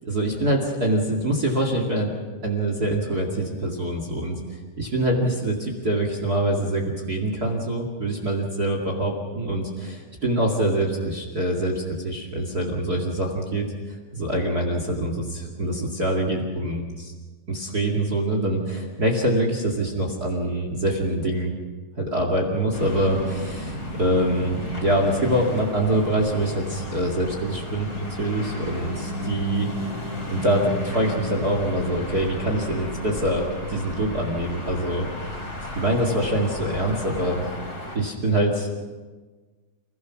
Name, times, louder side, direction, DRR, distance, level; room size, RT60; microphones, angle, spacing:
voice 1, 0.0-2.1 2.4-13.7 14.1-17.1 17.5-21.5 22.0-29.7 30.3-35.4 35.7-37.5 37.9-38.7, right 1 dB, 30° right, 2 dB, 2.3 m, -25 dB
sound 1, 22.7-38.0, left 1 dB, 25° left, 4.0 m, -33 dB
29.5 x 17.0 x 6.1 m, 1.3 s
omnidirectional pair, 4.0 m